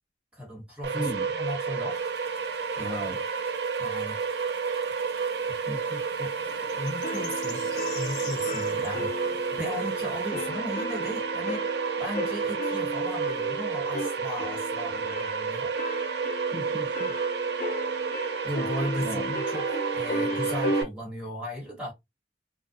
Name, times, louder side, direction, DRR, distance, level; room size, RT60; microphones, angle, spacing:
voice 1, 0.3-2.0 2.7-3.1 3.8-4.4 6.2-6.3 6.8-7.6 7.9-11.7 12.0-15.7 18.4-21.9, equal, 5° right, 1.2 m, -36 dB
sound 1, 0.8-20.8, right 5 dB, 70° right, 0.4 m, -30 dB
voice 2, 0.9-1.3 2.8-3.2 5.5-6.0 8.9-9.0 16.5-17.1 19.0-19.3, equal, 30° right, 1.1 m, -36 dB
sound 2, 1.9-10.3, left 5 dB, 85° left, 0.8 m, -47 dB
sound 3, 7.0-20.9, left 1 dB, 50° left, 0.5 m, -36 dB
2.5 x 2.1 x 2.5 m
head